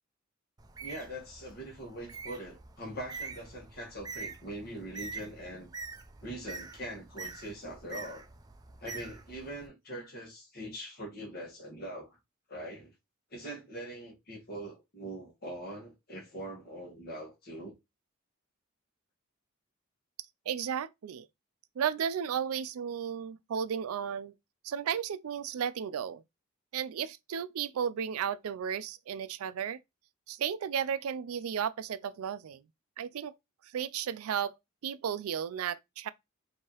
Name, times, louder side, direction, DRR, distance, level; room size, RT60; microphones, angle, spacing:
Bird, 0.6-9.7, right 4 dB, 20° right, 0.4 m, -45 dB
voice 1, 0.8-5.7 6.2-8.3 8.8-12.2 12.5-12.9 13.3-17.7, right 1 dB, 45° left, 1.4 m, -42 dB
voice 2, 20.5-21.3 21.8-24.3 24.6-26.2 26.7-29.8 30.3-32.6 33.0-33.3 33.7-34.5 34.8-36.1, right 8 dB, 90° right, 0.4 m, -34 dB
4.6 x 2.8 x 2.9 m
head